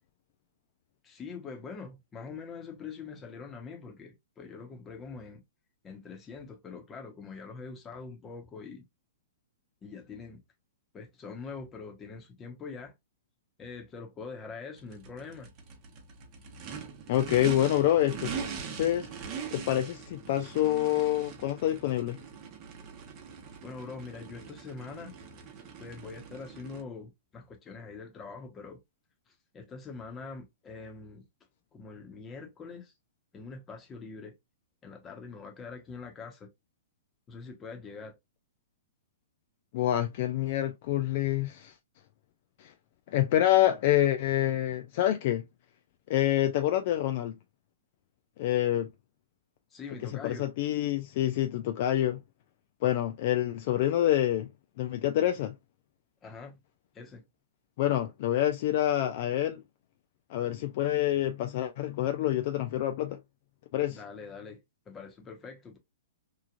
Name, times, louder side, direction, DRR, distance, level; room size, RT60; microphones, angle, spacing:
voice 1, 1.0-5.4 5.8-8.9 9.8-10.4 10.9-12.9 13.6-15.5 23.6-25.1 25.8-28.8 29.3-31.3 31.7-32.9 33.3-34.3 34.8-36.5 37.3-38.2 49.7-50.5 56.2-56.6 56.9-57.2 63.9-64.6 64.9-65.8, left 4 dB, 20° left, 1.0 m, -44 dB
Race car auto racing / Idling / Accelerating revving vroom, 14.8-26.8, right 6 dB, 35° right, 0.9 m, -42 dB
voice 2, 17.1-18.3 18.7-19.1 19.5-22.2 39.7-41.7 42.6-42.7 43.1-45.4 46.1-47.3 48.4-48.9 50.2-52.2 52.8-54.5 54.8-55.5 57.8-59.6 60.3-63.2 63.7-64.0, left 13 dB, 50° left, 0.4 m, -27 dB
3.0 x 2.4 x 2.4 m
hypercardioid pair, 125°, 0 cm